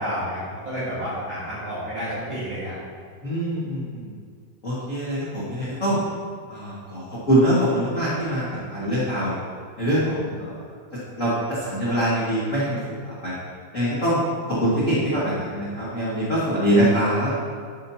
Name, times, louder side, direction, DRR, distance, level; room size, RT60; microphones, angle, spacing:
voice 1, 0.0-2.7, equal, 45° right, -11 dB, 1.8 m, -30 dB
voice 2, 3.2-4.1 4.6-6.0 6.5-9.3 9.8-10.6 11.2-13.3 13.7-14.2 14.5-17.3, equal, 65° left, -10 dB, 0.7 m, -23 dB
10.0 x 8.5 x 2.9 m, 2.1 s
omnidirectional pair, 4.7 m